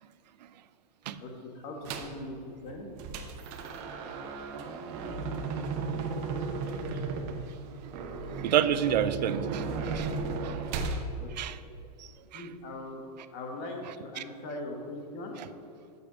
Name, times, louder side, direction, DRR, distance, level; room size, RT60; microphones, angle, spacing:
voice 1, 1.2-2.3 2.6-2.9 11.2-11.3 12.3-13.0 13.3-15.3, left 2 dB, 40° left, 2 dB, 1.4 m, -40 dB
sound 1, 1.8-2.2 2.7-11.0, right 4 dB, 40° right, 0.7 m, -35 dB
voice 2, 8.3-10.1 10.4-10.6 11.4-11.6 12.3-12.5 13.8-14.2 15.4-15.5, right 9 dB, 85° right, 13 dB, 0.4 m, -29 dB
7.0 x 5.6 x 5.0 m, 2.7 s
hypercardioid pair, 145°, 21 cm